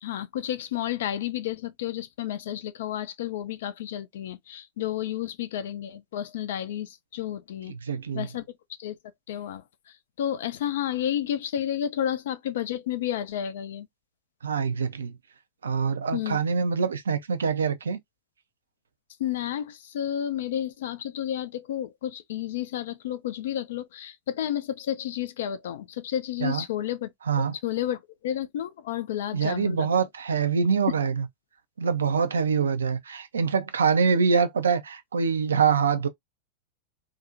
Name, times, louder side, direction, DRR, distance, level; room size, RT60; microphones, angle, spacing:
voice 1, 0.0-7.7 8.1-8.4 8.8-9.0 9.3-13.9 16.1-16.4 19.2-27.1 27.4-29.9, left 11 dB, 55° left, 0.4 m, -31 dB
voice 2, 7.7-8.3 14.4-15.2 15.6-18.0 26.4-26.6 27.3-27.5 29.3-31.2 31.8-36.1, right 6 dB, 70° right, 0.3 m, -25 dB
2.4 x 2.0 x 2.6 m
figure-of-eight pair, 90°, 0 cm